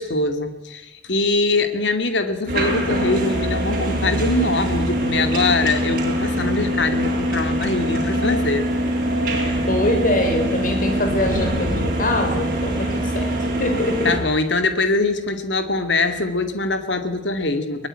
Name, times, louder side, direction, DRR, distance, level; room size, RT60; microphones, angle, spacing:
voice 1, 0.0-8.6 14.0-17.9, left 3 dB, 75° left, 8 dB, 2.3 m, -23 dB
sound 1, 2.5-14.2, right 1 dB, 50° right, 6.8 m, -23 dB
voice 2, 9.5-14.1, left 1 dB, 45° left, 5 dB, 5.4 m, -23 dB
22.0 x 20.0 x 9.9 m, 1.0 s
head